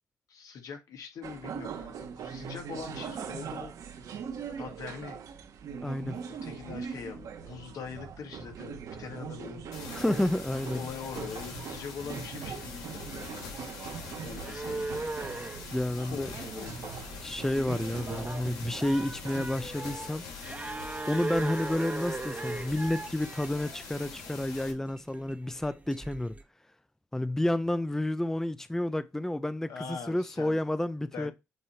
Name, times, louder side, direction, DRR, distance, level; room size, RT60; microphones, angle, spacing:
voice 1, 0.3-3.7 4.6-5.2 6.3-9.8 10.7-13.5 13.8-15.3 16.0-17.0 29.7-30.7 31.1-31.3, left 6 dB, 70° left, 1.9 m, -43 dB
sound 1, 1.2-19.4, right 7 dB, 70° right, 1.3 m, -41 dB
voice 2, 5.8-6.2 9.9-10.8 15.7-16.3 17.2-20.2 21.1-26.4 27.1-31.3, left 1 dB, 5° left, 0.5 m, -30 dB
sound 2, 9.7-24.7, left 5 dB, 85° left, 2.1 m, -44 dB
sound 3, 14.3-26.4, right 2 dB, 25° right, 1.2 m, -39 dB
7.8 x 3.1 x 4.4 m
supercardioid pair, 60°, 6 cm